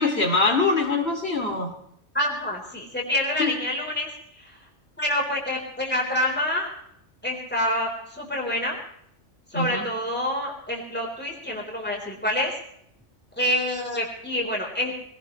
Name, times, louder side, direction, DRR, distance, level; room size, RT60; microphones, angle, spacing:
voice 1, 0.0-1.7 3.4-3.5 9.5-9.8, left 3 dB, 60° left, 3 dB, 2.9 m, -23 dB
voice 2, 2.1-4.1 4.4-4.6 5.0-6.7 7.2-8.8 9.5-12.5 13.4-14.9, left 1 dB, 10° left, -1 dB, 4.1 m, -27 dB
22.5 x 18.0 x 3.2 m, 0.70 s
omnidirectional pair, 1.2 m